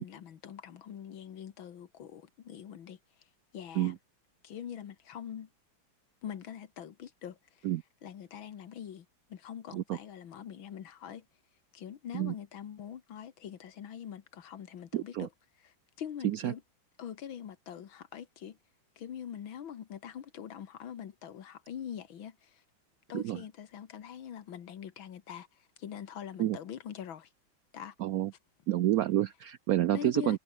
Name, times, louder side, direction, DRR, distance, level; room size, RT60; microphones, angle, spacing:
voice 1, 0.0-3.0 3.5-3.9 4.4-5.5 6.2-7.4 8.0-11.2 11.7-15.3 15.6-16.6 17.0-18.6 19.0-22.6 23.1-25.5 25.8-27.3 27.7-27.9 29.9-30.4, left 9 dB, 80° left, 2.2 m, -43 dB
voice 2, 14.9-15.3 16.2-16.5 23.1-23.4 26.4-26.6 28.0-28.3 28.7-30.4, right 13 dB, 85° right, 0.8 m, -29 dB
omnidirectional pair, 2.2 m